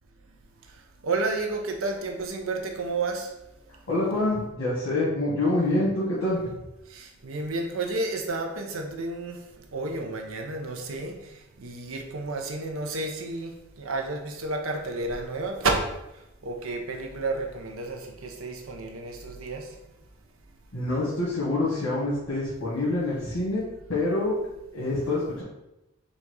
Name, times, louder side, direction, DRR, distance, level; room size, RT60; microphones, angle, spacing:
voice 1, 1.0-3.3 7.0-9.4 9.7-11.1 11.6-13.5 13.8-15.9 16.4-19.6, right 3 dB, 85° right, 3 dB, 0.7 m, -31 dB
voice 2, 3.9-6.5 20.7-23.6 23.9-24.3 24.7-25.4, left 2 dB, 85° left, -8 dB, 1.4 m, -26 dB
4.1 x 2.4 x 4.6 m, 0.92 s
head